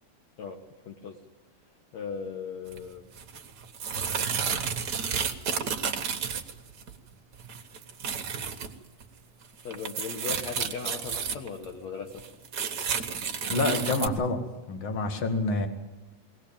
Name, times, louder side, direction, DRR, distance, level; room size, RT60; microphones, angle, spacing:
voice 1, 0.9-1.2 1.9-3.1 9.6-12.2, left 5 dB, 60° left, 2 dB, 2.5 m, -38 dB
sound 1, 2.7-2.8 3.2-6.9 7.3-8.7 9.0-9.1 9.4-11.7 12.2-14.1, right 6 dB, 50° right, 1.2 m, -31 dB
voice 2, 13.5-14.4 14.7-15.7, left 2 dB, 40° left, 5 dB, 2.6 m, -27 dB
21.5 x 18.5 x 8.9 m, 1.1 s
omnidirectional pair, 3.8 m